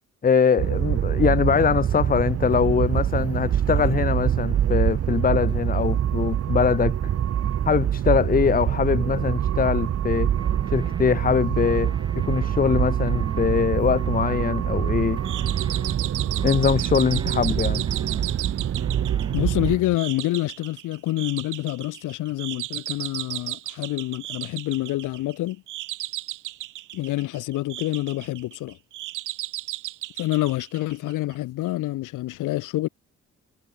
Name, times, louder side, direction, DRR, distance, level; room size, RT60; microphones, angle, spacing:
voice 1, 0.2-7.0 7.6-10.3 10.7-15.2 16.4-17.8, left 6 dB, 30° left, 0.9 m, -22 dB
sound 1, 0.6-19.8, right 10 dB, 50° right, 1.1 m, -25 dB
sound 2, 10.4-11.2 11.6-13.6 14.0-16.0 16.4-18.4 18.8-20.0, right 2 dB, 15° right, 3.8 m, -39 dB
sound 3, 15.2-31.3, right 15 dB, 85° right, 2.1 m, -35 dB
voice 2, 19.3-25.6 26.9-28.8 30.2-32.9, left 17 dB, 90° left, 1.9 m, -27 dB
cardioid pair, 90°, 30 cm